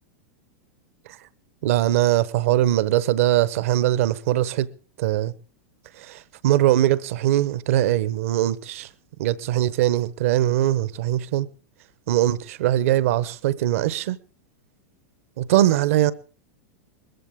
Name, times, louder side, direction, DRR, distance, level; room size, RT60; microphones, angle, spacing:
voice 1, 1.6-4.7 5.0-5.3 6.1-8.9 9.2-11.5 12.1-14.2 15.4-16.1, right 13 dB, 70° right, 1.0 m, -21 dB
20.5 x 15.0 x 3.7 m
hypercardioid pair, 115°, 8 cm